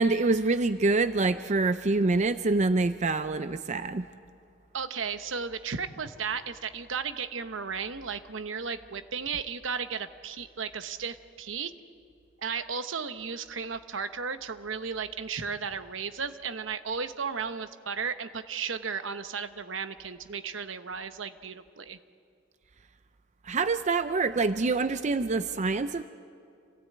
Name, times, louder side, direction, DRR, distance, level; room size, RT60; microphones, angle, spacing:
voice 1, 0.0-4.1 23.4-26.0, right 3 dB, 35° right, 11 dB, 0.5 m, -26 dB
voice 2, 4.7-11.7 12.4-22.0, right 6 dB, 75° right, 10 dB, 1.0 m, -34 dB
27.0 x 16.5 x 8.7 m, 2.4 s
head